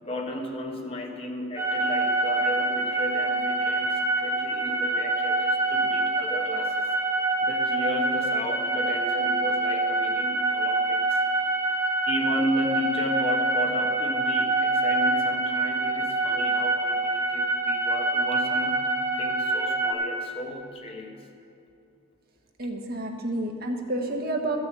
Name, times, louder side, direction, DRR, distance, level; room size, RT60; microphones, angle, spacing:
voice 1, 0.0-6.9 7.4-11.2 12.1-21.2, left 1 dB, 25° left, 2 dB, 0.9 m, -34 dB
sound 1, 1.6-19.9, right 2 dB, 10° right, 1.3 m, -25 dB
voice 2, 22.6-24.6, right 1 dB, 45° right, 2 dB, 1.2 m, -29 dB
14.0 x 6.4 x 8.3 m, 2.8 s
head